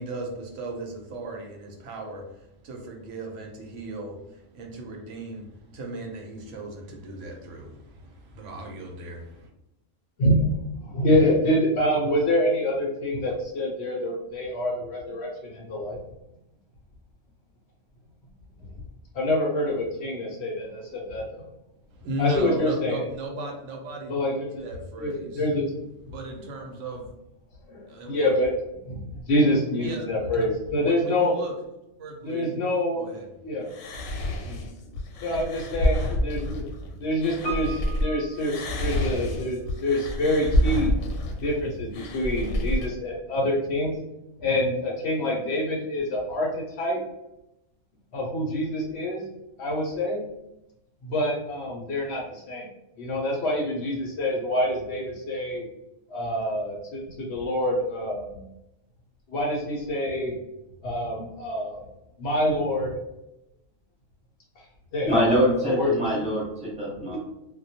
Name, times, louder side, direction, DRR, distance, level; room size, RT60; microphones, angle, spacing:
voice 1, 0.0-9.5 21.9-24.1 24.6-25.4 26.1-27.2 27.9-28.3 29.8-30.1 30.3-30.5 30.8-31.5 32.0-32.6 33.0-33.3, right 1 dB, 70° right, 1 dB, 0.9 m, -36 dB
voice 2, 10.2-10.5 10.8-16.0 19.1-21.2 22.2-23.0 24.1-24.6 25.0-25.7 27.7-28.5 28.9-29.0 29.3-31.3 32.2-33.0 33.4-33.7 34.5-34.6 35.2-36.6 37.0-41.0 41.4-44.0 44.4-47.0 48.1-49.2 49.6-50.2 51.0-52.7 53.0-55.6 56.1-58.4 59.3-60.3 60.8-61.8 62.2-62.9 64.6-64.7 64.9-66.1 67.1-67.2, left 1 dB, 65° left, -1 dB, 0.7 m, -26 dB
sound 1, 33.7-38.1 38.4-42.9, left 1 dB, 85° left, 1.0 m, -28 dB
Piano, 37.4-39.5 39.7-39.8, right 4 dB, 35° left, 0.7 m, -38 dB
voice 3, 65.1-67.2, equal, 5° right, -6 dB, 0.9 m, -24 dB
2.2 x 2.1 x 2.7 m, 0.90 s
omnidirectional pair, 1.4 m